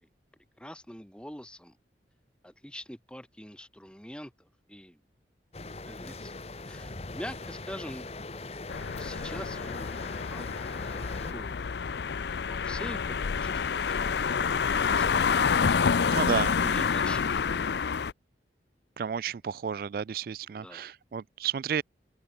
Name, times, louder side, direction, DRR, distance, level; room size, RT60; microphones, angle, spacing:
voice 1, 0.6-1.7 2.4-5.0 5.9-6.3 6.7-8.4 8.9-11.0 11.3-11.7 12.5-14.2 16.5-17.5 20.5-20.9, equal, 5° left, 5.6 m, -45 dB
sound 1, 5.5-11.3, left 3 dB, 35° left, 1.0 m, -40 dB
sound 2, 8.7-18.1, left 6 dB, 70° left, 0.5 m, -28 dB
voice 2, 16.1-16.5 19.0-21.8, right 7 dB, 55° right, 0.3 m, -31 dB
open air
head